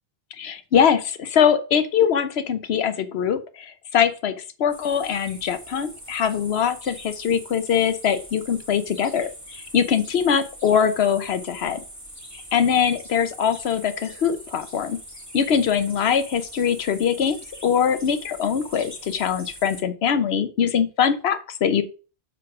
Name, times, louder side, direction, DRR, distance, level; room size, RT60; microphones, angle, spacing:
voice 1, 0.4-4.3 4.6-11.8 12.3-15.0 15.3-21.8, left 7 dB, 85° left, 11 dB, 1.0 m, -22 dB
sound 1, 4.7-19.8, right 1 dB, 15° right, 2.2 m, -43 dB
7.6 x 3.9 x 6.0 m, 0.35 s
omnidirectional pair, 1.0 m